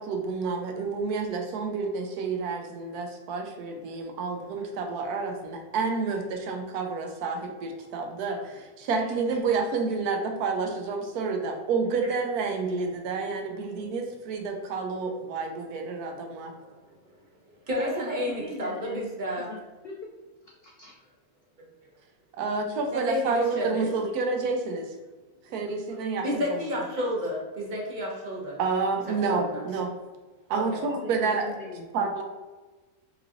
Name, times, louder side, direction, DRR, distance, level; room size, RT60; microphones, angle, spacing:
voice 1, 0.0-16.5 22.4-24.9 25.5-26.4 28.6-29.9 30.5-31.5 31.9-32.2, right 4 dB, 90° right, 3 dB, 1.1 m, -29 dB
voice 2, 8.9-9.3 17.8-19.0 19.4-20.1 20.4-20.9 30.5-31.9, left 4 dB, 85° left, 0 dB, 0.5 m, -41 dB
voice 3, 16.3-16.8 17.7-19.5 22.9-23.9 26.2-28.6 29.2-29.7 30.5-30.8, left 1 dB, 35° right, -3 dB, 0.9 m, -31 dB
4.5 x 3.1 x 2.5 m, 1.2 s
omnidirectional pair, 1.6 m